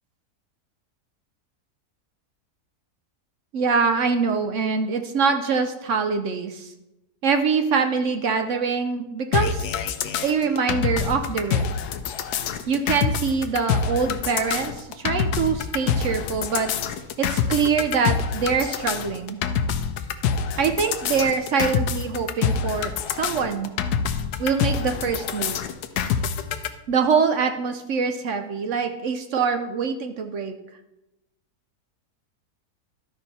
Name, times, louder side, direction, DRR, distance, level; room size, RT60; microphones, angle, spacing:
voice 1, 3.5-6.7 7.2-9.7 10.2-11.6 12.7-16.7 17.2-19.4 20.6-23.7 24.4-25.6 26.9-30.6, right 5 dB, 65° right, 7 dB, 0.8 m, -24 dB
sound 1, 9.3-26.7, left 7 dB, 85° left, 1.2 m, -26 dB
12.5 x 5.4 x 4.1 m, 0.96 s
omnidirectional pair, 1.7 m